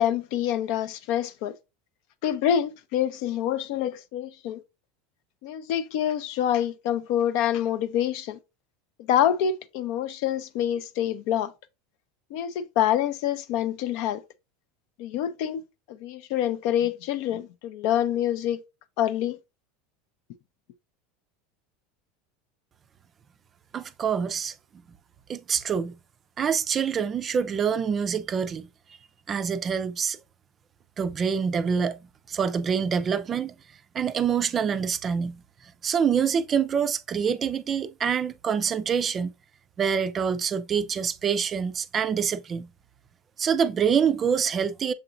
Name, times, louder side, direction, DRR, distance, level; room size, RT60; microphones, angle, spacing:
voice 1, 0.0-1.5 2.2-4.6 5.4-8.4 9.1-11.5 12.3-14.2 15.0-15.6 16.0-18.6 19.0-19.4, left 10 dB, 65° left, 0.4 m, -26 dB
voice 2, 23.7-24.5 25.3-25.9 26.4-28.7 29.3-30.2 31.0-32.0 32.3-33.5 33.9-35.4 35.8-39.3 39.8-42.7 43.4-44.9, right 7 dB, 35° right, 0.4 m, -26 dB
6.9 x 2.9 x 2.5 m
hypercardioid pair, 95°, 0 cm